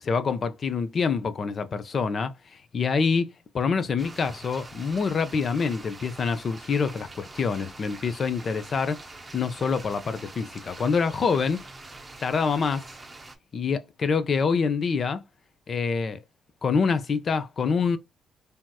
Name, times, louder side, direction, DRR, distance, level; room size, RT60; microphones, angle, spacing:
voice 1, 0.0-9.0 9.3-11.6 12.2-12.8 13.5-15.2 15.7-16.2 16.6-18.0, left 5 dB, 45° left, 0.6 m, -26 dB
sound 1, 4.0-13.4, right 2 dB, 25° right, 0.7 m, -45 dB
3.4 x 2.8 x 2.2 m
cardioid pair, 90°, 0 cm